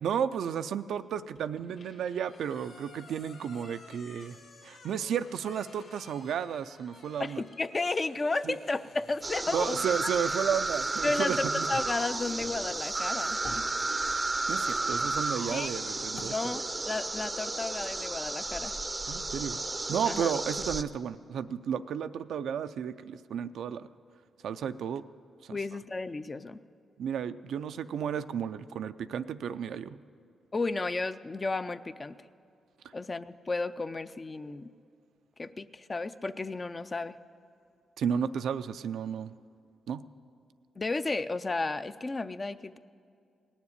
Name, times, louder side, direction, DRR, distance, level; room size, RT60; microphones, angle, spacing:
voice 1, 0.0-4.4 4.6-7.4 8.4-8.6 9.5-11.8 14.5-16.5 19.1-23.9 24.4-25.0 25.4-25.6 27.0-30.0 38.0-39.3 39.9-40.0, right 8 dB, 80° right, 12 dB, 0.4 m, -33 dB
sound 1, 1.4-11.7, left 3 dB, 75° left, 1.6 m, -55 dB
voice 2, 7.2-9.8 11.0-13.4 15.5-15.7 16.2-18.7 20.0-20.3 25.5-26.6 30.5-32.1 32.9-34.7 35.4-37.2 40.8-42.8, left 3 dB, 30° left, 12 dB, 0.5 m, -33 dB
sound 2, 9.2-20.8, right 2 dB, 25° right, 0.5 m, -32 dB
sound 3, 9.4-16.3, left 2 dB, 55° left, 1.5 m, -52 dB
18.0 x 7.3 x 9.6 m, 2.3 s
cardioid pair, 75°, 0 cm